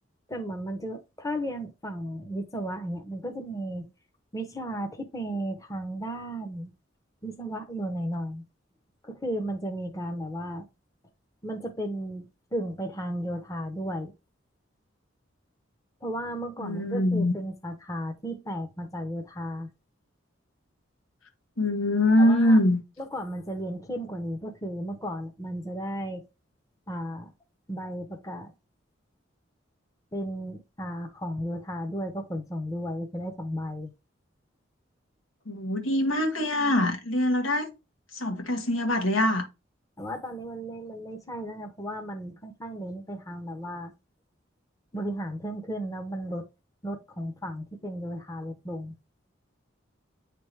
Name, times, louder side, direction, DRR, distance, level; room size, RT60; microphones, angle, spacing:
voice 1, 0.3-3.9 4.3-6.7 7.2-8.4 9.0-10.7 11.4-14.1 16.0-19.7 22.2-22.6 23.0-26.2 26.9-27.3 27.7-28.5 30.1-33.9 40.0-43.9 44.9-46.5 46.8-48.9, equal, 15° left, 0.8 m, -34 dB
voice 2, 16.6-17.3 21.6-22.8 35.4-37.7 38.1-39.5, left 1 dB, 90° left, 1.4 m, -23 dB
9.3 x 3.4 x 3.2 m
head